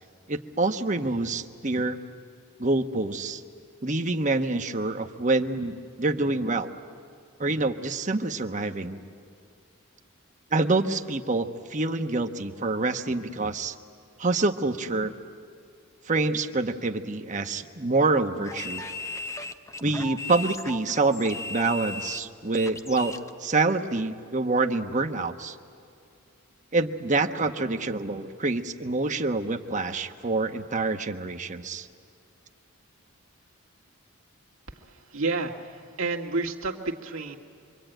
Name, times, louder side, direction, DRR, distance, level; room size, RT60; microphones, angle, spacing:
voice 1, 0.3-2.0 2.6-3.4 3.8-6.7 7.4-9.0 10.5-13.7 14.2-15.1 16.1-18.8 19.8-25.6 26.7-31.9, right 3 dB, 35° right, 6 dB, 1.1 m, -26 dB
sound 1, 18.4-23.3, left 2 dB, 15° left, 0.7 m, -37 dB
voice 2, 35.1-37.4, right 3 dB, 65° right, 0 dB, 1.9 m, -30 dB
26.0 x 24.0 x 9.1 m, 2.4 s
head